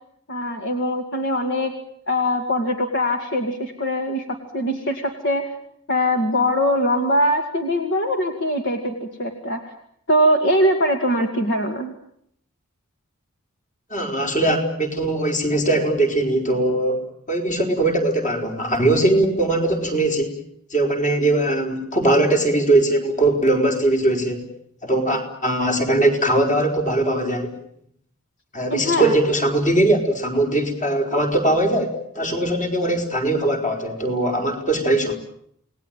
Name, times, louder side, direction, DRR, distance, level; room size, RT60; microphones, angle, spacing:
voice 1, 0.3-1.7 2.1-4.2 4.5-5.4 5.9-9.6 10.1-11.9 28.7-29.2, equal, 55° left, 5 dB, 2.4 m, -22 dB
voice 2, 13.9-17.0 17.3-20.4 20.7-24.4 24.8-27.6 28.5-35.1, right 1 dB, 35° left, 3 dB, 4.7 m, -20 dB
28.5 x 19.5 x 9.0 m, 0.70 s
head